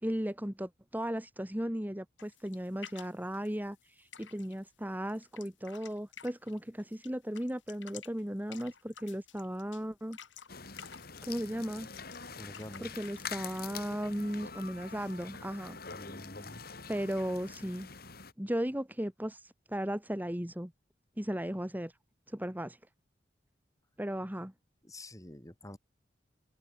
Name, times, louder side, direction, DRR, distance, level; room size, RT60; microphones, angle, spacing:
voice 1, 0.0-10.2 11.2-11.9 12.8-15.8 16.9-17.9 18.4-20.7 21.2-21.9 22.3-22.8 24.0-24.5, equal, 10° right, 2.1 m, -36 dB
sound 1, 2.2-4.7 5.1-7.1 7.3-12.2 12.4-13.6, left 8 dB, 90° left, 3.1 m, -52 dB
sound 2, 10.5-18.3, left 5 dB, 55° left, 6.6 m, -45 dB
voice 2, 12.4-12.9 15.9-16.6 24.8-25.8, left 1 dB, 20° left, 3.4 m, -47 dB
head